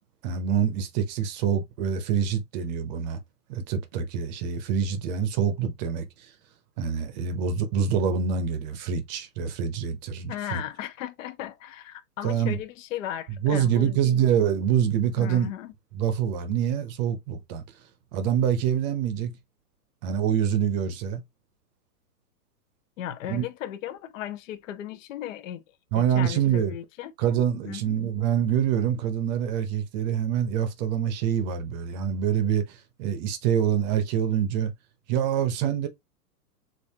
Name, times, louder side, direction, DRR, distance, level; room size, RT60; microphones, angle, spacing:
voice 1, 0.2-3.2 3.5-6.1 6.8-10.6 12.2-12.6 13.4-15.5 15.9-17.6 18.1-19.3 20.0-21.2 23.3-23.4 25.9-26.7 27.2-34.7 35.1-35.9, right 8 dB, 25° right, 0.7 m, -25 dB
voice 2, 10.3-14.1 15.2-15.7 23.0-25.6 25.9-27.1 27.6-27.9, left 11 dB, 55° left, 0.7 m, -36 dB
7.0 x 2.6 x 2.8 m
hypercardioid pair, 150°, 49 cm